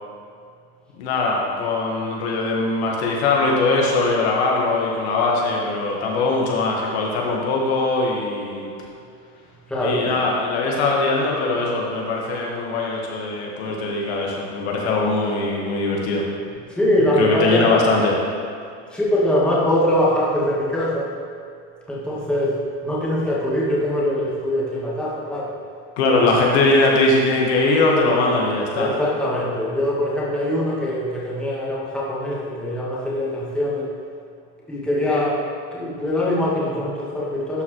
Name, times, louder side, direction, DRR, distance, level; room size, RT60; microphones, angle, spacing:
voice 1, 1.0-8.7 9.8-16.2 17.2-18.2 26.0-28.9, left 3 dB, 85° left, -2 dB, 1.4 m, -21 dB
voice 2, 9.7-10.2 13.6-14.0 16.7-17.7 18.9-21.1 21.9-22.6 22.8-25.5 26.1-26.4 28.7-33.9 34.7-37.6, left 1 dB, 5° left, -7 dB, 1.2 m, -23 dB
11.5 x 4.3 x 3.0 m, 2.3 s
supercardioid pair, 145°, 32 cm